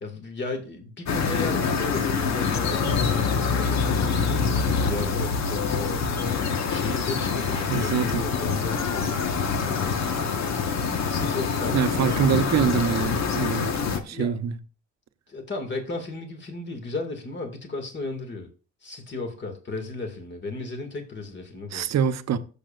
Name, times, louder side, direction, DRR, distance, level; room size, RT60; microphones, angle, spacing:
voice 1, 0.0-4.4 4.9-6.1 6.7-9.2 9.6-10.7 11.1-11.8 14.1-14.4 15.3-18.5 18.8-21.9, left 3 dB, 35° left, 2.1 m, -35 dB
sound 1, 1.1-14.0, left 5 dB, 60° left, 1.4 m, -25 dB
voice 2, 7.7-8.3 11.7-13.7 14.0-14.6 21.7-22.4, right 7 dB, 60° right, 0.9 m, -24 dB
15.0 x 7.2 x 2.5 m
cardioid pair, 90°, 30 cm